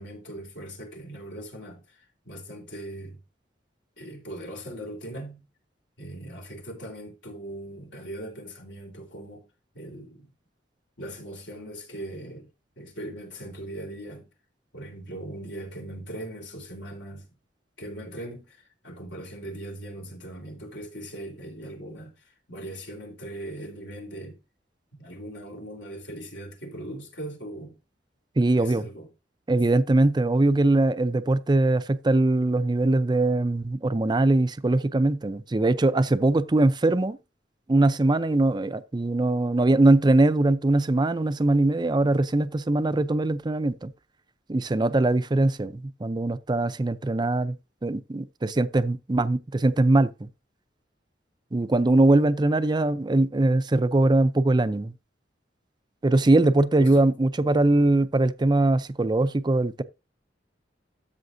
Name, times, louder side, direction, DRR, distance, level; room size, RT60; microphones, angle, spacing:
voice 1, 0.0-3.2 4.0-5.5 6.0-9.5 9.7-10.3 11.0-12.5 12.8-14.3 14.7-17.3 17.8-24.4 24.9-27.8 28.5-29.1 56.8-57.1, right 1 dB, 75° left, 3.7 m, -40 dB
voice 2, 28.4-28.9 29.5-37.2 37.7-43.9 44.5-47.6 47.8-50.3 51.5-54.9 56.0-59.8, right 2 dB, 25° right, 0.5 m, -22 dB
13.0 x 7.0 x 2.6 m
head